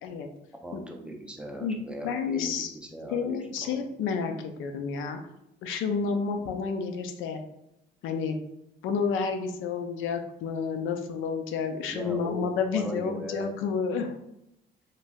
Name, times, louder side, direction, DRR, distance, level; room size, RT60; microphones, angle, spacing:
voice 1, 0.6-3.8 11.9-13.5, equal, 5° right, 1 dB, 0.5 m, -38 dB
voice 2, 1.6-2.7 3.1-5.2 5.6-7.4 8.0-8.4 8.8-14.1, left 5 dB, 90° left, 5 dB, 0.4 m, -30 dB
3.2 x 2.5 x 2.3 m, 0.83 s
cardioid pair, 90°, 20 cm